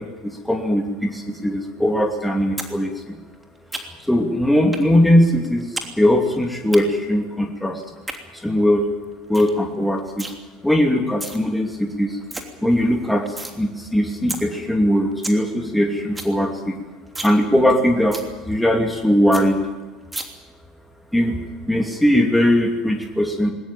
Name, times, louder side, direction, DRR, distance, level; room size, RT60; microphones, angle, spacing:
voice 1, 0.0-3.2 4.0-7.8 8.3-8.9 9.3-10.3 10.6-12.2 12.6-16.8 17.2-19.6 21.1-21.4 21.7-23.5, equal, 5° left, 3 dB, 2.6 m, -20 dB
sound 1, 2.6-2.7 3.0-4.1 4.7-4.9 5.2-5.9 6.2-6.8 7.8-8.2 8.7-8.8 9.0-9.1 9.3-9.6 9.8-10.3 11.0-11.4 11.8-11.9 12.1-12.4 12.8-13.6 13.9-14.0 14.3-14.4 14.8-14.9 15.1-15.4 15.7-15.8 16.0-16.3 16.7-16.8 17.1-17.4 17.7-17.8 18.1-18.3 18.7-18.8 19.0-19.1 19.3-19.4 20.1-20.2, right 2 dB, 10° right, 3.1 m, -31 dB
20.5 x 19.5 x 9.1 m, 1.2 s
figure-of-eight pair, 70°, 0 cm